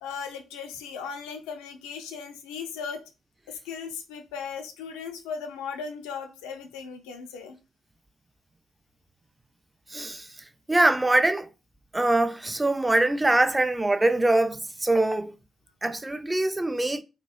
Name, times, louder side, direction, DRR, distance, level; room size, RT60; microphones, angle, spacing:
voice 1, 0.0-3.0 3.5-7.6, left 6 dB, 80° left, 0.4 m, -37 dB
voice 2, 9.9-10.3 10.7-11.5 11.9-15.3 15.8-17.0, right 2 dB, 20° right, 0.3 m, -23 dB
3.0 x 2.3 x 2.3 m
hypercardioid pair, 45°, 0 cm